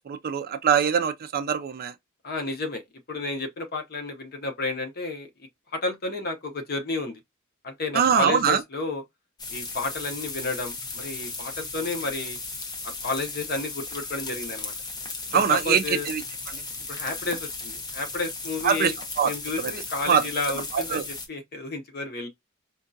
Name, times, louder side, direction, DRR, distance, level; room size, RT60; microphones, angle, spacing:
voice 1, 0.1-1.9 7.9-8.6 15.3-16.2 16.5-16.6 18.6-18.9 19.2-19.3 19.6-19.7 20.1-20.2 20.7-21.0, right 7 dB, 45° right, 0.3 m, -23 dB
voice 2, 2.2-5.3 5.7-7.2 7.6-9.0 9.5-12.4 12.8-14.7 15.3-16.1 16.9-19.0 19.2-22.3, left 3 dB, 45° left, 0.8 m, -31 dB
sound 1, 9.4-21.3, left 3 dB, 20° left, 0.7 m, -36 dB
4.4 x 2.3 x 2.6 m
head